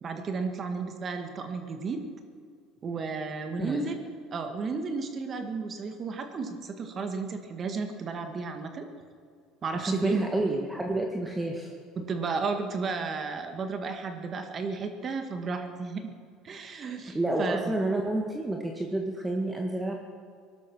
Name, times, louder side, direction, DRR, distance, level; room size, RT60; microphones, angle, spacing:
voice 1, 0.0-2.0 2.8-8.9 9.6-10.2 12.0-16.1 16.4-17.7, right 4 dB, 40° right, 6 dB, 1.9 m, -33 dB
voice 2, 9.7-11.7 17.0-19.9, right 2 dB, 15° right, 1 dB, 1.8 m, -29 dB
19.0 x 12.0 x 6.3 m, 2.2 s
supercardioid pair, 100°, 0 cm